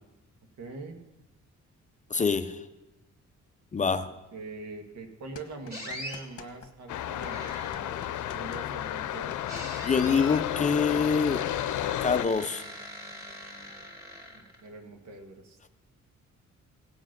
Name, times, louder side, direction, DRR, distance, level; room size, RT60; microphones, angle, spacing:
voice 1, 0.6-1.0 4.3-9.8 14.3-15.6, right 3 dB, 70° right, 4 dB, 2.0 m, -43 dB
voice 2, 2.1-2.6 3.7-4.1 9.8-11.4 12.0-12.6, left 5 dB, 25° left, 10 dB, 0.6 m, -25 dB
sound 1, 5.3-6.7 6.9-12.5, left 7 dB, 50° left, 1.2 m, -48 dB
sound 2, 5.7-6.2 7.3-8.0 9.5-10.5 11.2-14.7, equal, 35° right, 2.9 m, -42 dB
sound 3, 6.9-12.3, left 12 dB, 85° left, 0.6 m, -32 dB
17.0 x 8.0 x 6.0 m, 1.0 s
cardioid pair, 135°, 29 cm